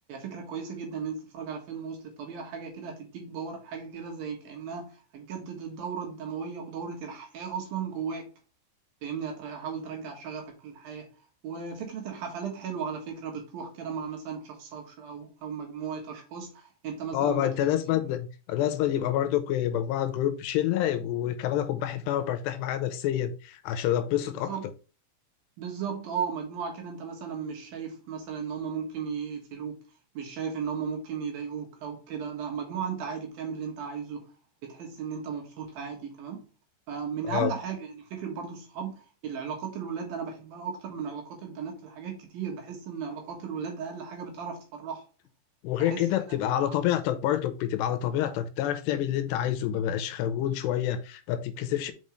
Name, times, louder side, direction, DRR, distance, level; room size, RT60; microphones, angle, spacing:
voice 1, 0.1-8.3 9.0-11.1 11.4-18.0 24.2-24.6 25.6-29.8 30.1-34.2 34.6-36.4 36.9-45.0 45.8-46.8, right 6 dB, 65° right, 2.9 m, -36 dB
voice 2, 17.1-24.5 37.3-37.5 45.6-51.9, left 11 dB, 80° left, 2.8 m, -27 dB
6.1 x 5.3 x 3.1 m
omnidirectional pair, 5.0 m